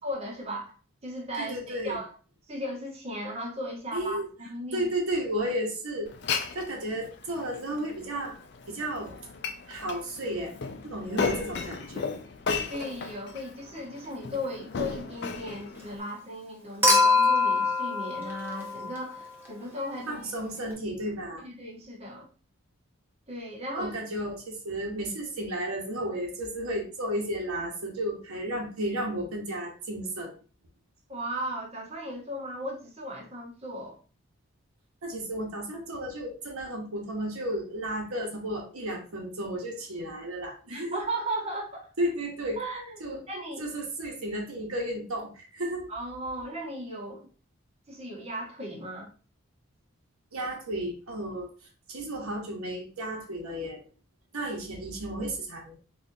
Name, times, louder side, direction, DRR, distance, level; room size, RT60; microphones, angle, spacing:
voice 1, 0.0-0.7 1.0-2.1 2.5-4.2 4.5-4.9 12.7-20.3 21.4-22.3 23.3-24.0 31.1-34.0 40.7-41.8 42.6-42.9 43.3-43.7 45.9-47.3 47.9-49.1, equal, 30° right, -3 dB, 0.9 m, -36 dB
voice 2, 1.4-2.0 3.9-4.3 4.7-6.1 6.5-8.4 8.7-9.2 9.7-10.6 10.8-12.1 20.1-21.5 23.7-30.3 35.0-41.0 42.0-42.6 43.0-43.2 43.6-45.9 50.3-51.5 51.9-53.8 54.3-55.8, right 1 dB, 85° right, 0 dB, 1.0 m, -33 dB
Glass, 6.1-16.0, left 4 dB, 50° left, 0.4 m, -35 dB
Human group actions / Chink clink / Liquid, 16.8-19.2 20.7-20.8, left 3 dB, 10° right, 0.6 m, -23 dB
4.1 x 2.4 x 2.6 m, 0.36 s
head